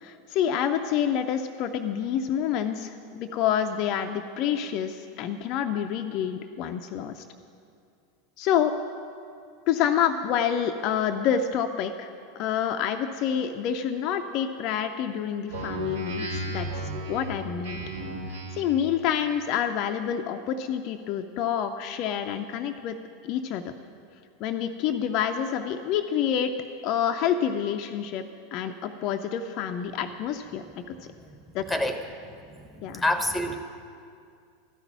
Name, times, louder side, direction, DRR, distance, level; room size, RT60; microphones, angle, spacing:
voice 1, 0.0-7.2 8.4-8.7 9.7-17.8 18.3-23.0 23.2-23.7 24.4-26.5 26.8-28.2 28.5-30.9 31.5-31.6 32.8-33.0, left 9 dB, 45° left, 6 dB, 0.5 m, -28 dB
Speech synthesizer, 15.5-18.8, right 1 dB, 70° right, 1.3 m, -34 dB
voice 2, 31.7-32.0 32.8-33.6, left 1 dB, 5° left, 7 dB, 1.0 m, -26 dB
12.5 x 5.9 x 8.9 m, 2.3 s
figure-of-eight pair, 85°, 0 cm